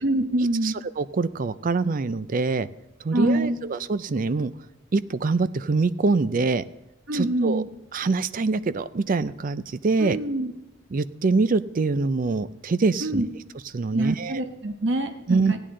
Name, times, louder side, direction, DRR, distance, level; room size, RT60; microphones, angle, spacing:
voice 1, 0.0-0.8 3.1-3.6 7.1-7.7 10.0-10.5 13.0-13.3 13.9-15.6, right 1 dB, 60° right, 6 dB, 1.1 m, -25 dB
voice 2, 0.6-2.7 3.0-4.5 4.9-6.6 7.1-7.6 7.9-10.2 10.9-13.2 13.7-14.4 15.3-15.6, right 3 dB, 40° right, 15 dB, 0.4 m, -24 dB
16.0 x 10.0 x 3.8 m, 0.92 s
head